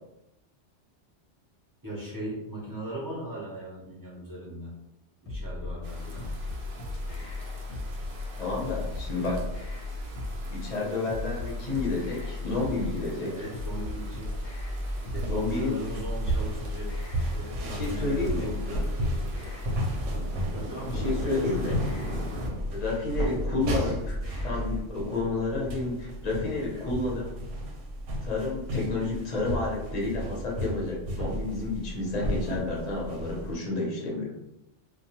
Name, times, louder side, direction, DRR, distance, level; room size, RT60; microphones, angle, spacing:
voice 1, 1.8-4.8 5.2-6.3 13.2-14.4 15.1-16.9 17.2-19.9 20.5-22.8 26.3-26.9, right 1 dB, 20° right, -8 dB, 0.6 m, -39 dB
sound 1, 5.3-24.9, left 2 dB, 70° left, 0.8 m, -36 dB
sound 2, 5.8-22.5, right 1 dB, 60° right, 0.6 m, -43 dB
voice 2, 8.4-9.4 10.5-13.3 15.3-15.8 17.6-18.5 20.9-21.7 22.7-27.2 28.2-34.4, left 3 dB, 40° left, -4 dB, 0.7 m, -30 dB
sound 3, 14.8-33.5, right 1 dB, 85° right, 0.9 m, -34 dB
2.3 x 2.2 x 2.8 m, 0.89 s
omnidirectional pair, 1.2 m